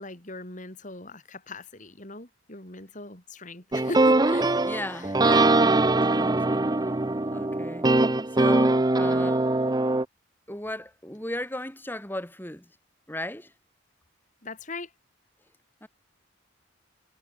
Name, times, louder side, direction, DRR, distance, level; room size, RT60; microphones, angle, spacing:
voice 1, 0.0-5.2 14.4-14.9, left 2 dB, 35° left, 3.7 m, -40 dB
sound 1, 3.7-10.0, right 2 dB, 20° right, 0.6 m, -22 dB
voice 2, 4.6-6.7 7.3-7.9 8.3-9.5 10.5-12.7 13.1-13.5 15.8-15.9, left 1 dB, 10° left, 2.8 m, -36 dB
head